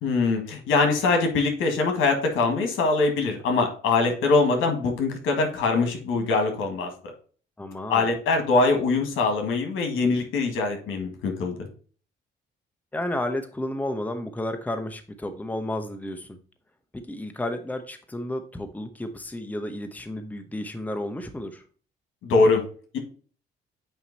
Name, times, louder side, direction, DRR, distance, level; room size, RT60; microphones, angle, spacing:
voice 1, 0.0-6.9 7.9-11.7 22.2-22.6 22.9-23.0, left 3 dB, 85° left, 4 dB, 1.8 m, -23 dB
voice 2, 7.6-8.1 12.9-16.3 16.9-21.6, left 1 dB, 10° left, 7 dB, 0.8 m, -32 dB
8.8 x 3.0 x 4.0 m, 0.41 s
cardioid pair, 90°, 20 cm